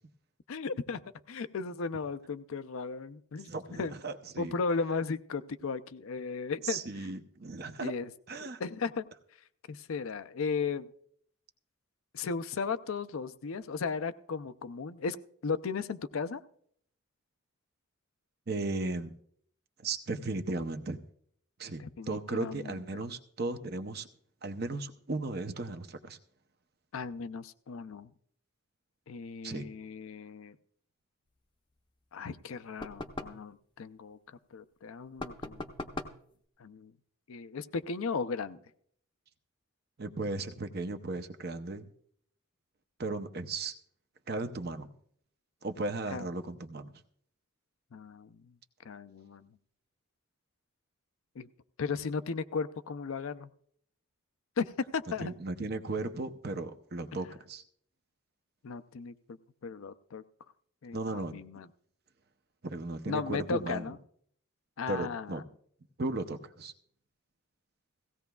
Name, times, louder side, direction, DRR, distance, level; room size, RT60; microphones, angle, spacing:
voice 1, 0.5-1.0 1.3-3.5 3.8-4.0 4.4-6.8 7.8-8.1 8.4-9.0 9.7-10.9 12.1-15.2 15.4-16.4 21.8-23.0 26.9-28.1 29.1-30.6 32.1-34.2 34.5-35.6 36.6-36.9 37.3-38.6 46.1-46.3 47.9-48.5 48.8-49.5 51.4-51.5 51.8-53.5 54.6-55.3 58.6-59.1 59.6-60.2 60.8-61.7 63.1-64.0 64.8-65.4, left 5 dB, 75° left, 13 dB, 0.5 m, -36 dB
voice 2, 3.5-4.5 6.6-7.9 8.3-8.6 18.5-19.1 19.8-21.0 21.6-24.1 24.4-26.2 29.4-29.7 40.0-41.9 43.0-43.8 44.3-44.9 45.6-46.9 55.2-57.6 60.9-61.3 62.6-63.9 64.9-65.4 66.0-66.7, right 3 dB, 45° right, 8 dB, 0.7 m, -36 dB
sound 1, 32.8-33.5 35.2-36.3, left 2 dB, 20° left, 0.6 m, -40 dB
17.0 x 16.0 x 2.3 m, 0.65 s
head